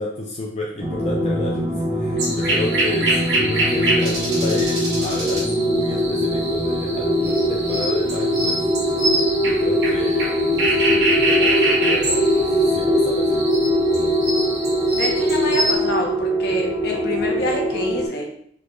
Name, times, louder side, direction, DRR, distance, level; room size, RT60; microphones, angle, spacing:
voice 1, 0.0-1.7 1.9-8.6 8.8-13.5 13.9-14.2, left 2 dB, 35° left, -3 dB, 0.4 m, -31 dB
sound 1, 0.8-18.1, equal, 15° right, 0.7 m, -21 dB
sound 2, 2.2-15.7, right 2 dB, 60° right, 1.3 m, -25 dB
voice 2, 14.9-18.3, left 2 dB, 55° left, 0 dB, 0.8 m, -27 dB
4.3 x 2.4 x 3.0 m, 0.66 s
head